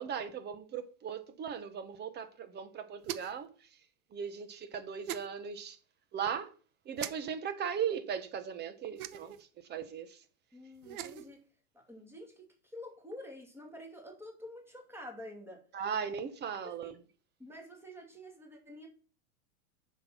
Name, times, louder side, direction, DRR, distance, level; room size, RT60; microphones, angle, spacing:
voice 1, 0.0-3.5 4.1-5.8 6.1-6.5 6.9-9.4 9.7-10.2 15.7-17.0, right 7 dB, 25° right, 1.1 m, -38 dB
sound 1, 3.0-3.5 5.1-5.3 7.0-7.1 9.0-9.4 10.8-11.3, right 12 dB, 70° right, 1.0 m, -40 dB
voice 2, 10.5-11.4 11.7-15.6 16.6-17.0 17.4-18.9, left 1 dB, 5° right, 2.6 m, -48 dB
7.3 x 6.5 x 5.9 m
hypercardioid pair, 135°, 44 cm